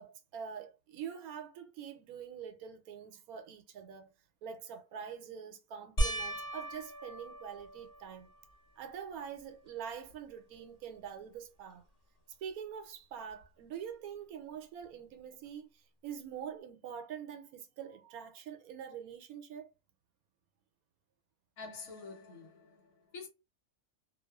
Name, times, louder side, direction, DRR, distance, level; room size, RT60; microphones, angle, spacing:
voice 1, 0.0-4.1 4.4-8.3 8.8-11.9 12.4-19.7, right 8 dB, 80° right, 1.0 m, -45 dB
sound 1, 6.0-8.6 9.2-9.8 10.1-10.2 13.4-13.5, right 1 dB, 35° left, 0.7 m, -37 dB
voice 2, 21.6-23.3, left 4 dB, 70° left, 1.3 m, -47 dB
2.5 x 2.4 x 2.2 m
omnidirectional pair, 1.6 m